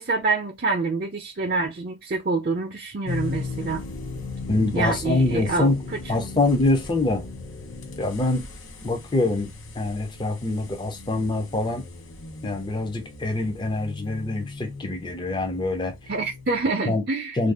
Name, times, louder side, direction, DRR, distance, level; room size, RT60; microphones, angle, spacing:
voice 1, 0.0-3.8 4.7-5.7 16.1-17.4, right 3 dB, 50° right, 0.5 m, -26 dB
sound 1, 3.1-16.6, left 3 dB, 80° left, 0.7 m, -37 dB
voice 2, 4.5-5.8 6.1-7.3 8.0-8.5 8.8-11.9 12.4-15.9 16.8-17.0 17.3-17.5, left 2 dB, 25° left, 0.5 m, -25 dB
2.5 x 2.3 x 3.4 m
head